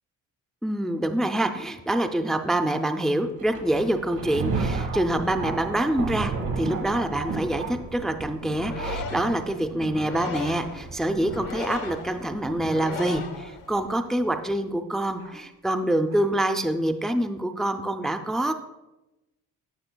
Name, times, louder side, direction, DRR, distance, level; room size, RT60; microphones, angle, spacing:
voice 1, 0.6-18.5, right 1 dB, ahead, 7 dB, 0.3 m, -26 dB
Thunder, 3.4-13.3 14.1-14.2 15.2-15.3 16.1-16.3, right 4 dB, 70° right, 1.2 m, -34 dB
sound 1, 8.1-10.2, right 4 dB, 85° right, 0.6 m, -41 dB
sound 2, 8.4-14.0, left 5 dB, 70° left, 1.0 m, -37 dB
11.5 x 6.2 x 2.2 m, 1.0 s
cardioid pair, 105°, 33 cm